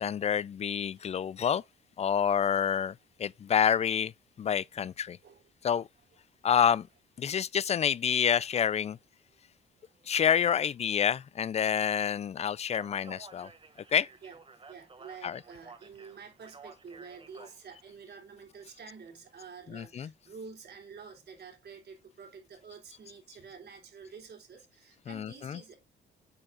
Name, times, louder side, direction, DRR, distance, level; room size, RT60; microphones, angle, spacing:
voice 1, 0.0-1.6 2.0-4.1 4.4-5.2 5.6-5.9 6.4-6.9 7.2-9.0 10.1-13.5 13.9-14.1 15.2-15.4 19.7-20.1 25.1-25.6, left 8 dB, 35° left, 0.3 m, -28 dB
voice 2, 0.9-1.5 5.2-5.4 9.8-10.2 14.2-14.4 14.7-25.7, right 5 dB, 55° right, 3.1 m, -49 dB
Speech, 12.6-17.9, right 4 dB, 25° right, 1.3 m, -53 dB
8.9 x 4.3 x 3.8 m
cardioid pair, 90°, 20 cm